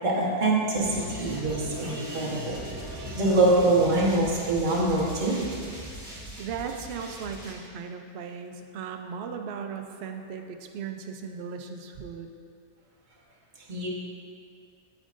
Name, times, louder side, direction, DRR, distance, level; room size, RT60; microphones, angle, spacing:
voice 1, 0.0-2.5 3.0-5.4 13.7-13.9, right 2 dB, 35° right, -4 dB, 1.2 m, -24 dB
sound 1, 0.7-7.5, equal, 10° right, 1.3 m, -39 dB
voice 2, 6.4-12.3, right 6 dB, 65° right, 5 dB, 0.7 m, -37 dB
8.8 x 8.1 x 2.5 m, 2.3 s
omnidirectional pair, 1.6 m